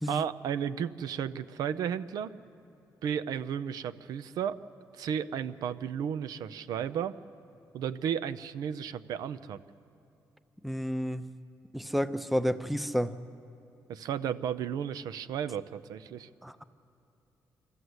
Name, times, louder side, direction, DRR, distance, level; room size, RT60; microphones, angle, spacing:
voice 1, 0.1-2.3 3.0-4.6 4.9-7.1 7.7-9.6 13.9-16.3, right 8 dB, 90° right, 13 dB, 0.6 m, -33 dB
voice 2, 10.6-11.3 11.7-13.1 16.4-16.6, equal, ahead, 12 dB, 0.6 m, -30 dB
25.0 x 14.0 x 8.0 m, 2.8 s
cardioid pair, 135°, 6 cm